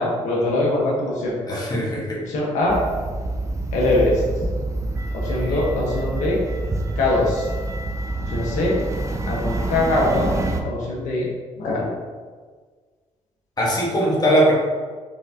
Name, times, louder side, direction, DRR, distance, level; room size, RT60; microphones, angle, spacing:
voice 1, 0.0-1.6 2.2-2.8 3.7-4.2 5.1-6.4 7.0-7.5 8.3-8.8 9.3-10.3 10.6-11.3 11.6-11.9, left 2 dB, 85° left, -4 dB, 1.3 m, -22 dB
voice 2, 1.5-2.2 5.3-5.7 13.6-14.5, equal, 30° left, -3 dB, 1.5 m, -21 dB
sound 1, 2.7-10.6, right 2 dB, 25° right, 0.6 m, -27 dB
4.8 x 3.8 x 2.9 m, 1.5 s
cardioid pair, 75°, 13 cm